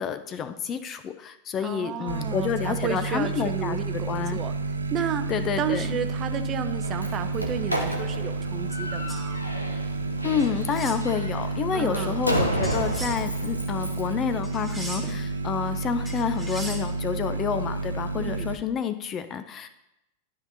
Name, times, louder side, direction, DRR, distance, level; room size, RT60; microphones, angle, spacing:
voice 1, 0.0-4.4 5.3-6.0 10.2-19.7, left 8 dB, 30° left, 11 dB, 0.5 m, -29 dB
voice 2, 1.6-4.5 4.9-5.3 5.6-9.4 11.7-12.2 18.2-18.5, right 8 dB, 30° right, 9 dB, 0.5 m, -32 dB
sound 1, 2.1-18.6, right 3 dB, 75° right, 0.5 m, -30 dB
Slam, 6.7-14.1, equal, 90° left, 0.9 m, -32 dB
sound 2, 9.1-9.3 10.4-11.0 12.6-13.2 14.4-15.2 16.0-16.8, right 1 dB, ahead, 1.5 m, -38 dB
11.5 x 5.6 x 2.8 m, 0.87 s
figure-of-eight pair, 90°, 0 cm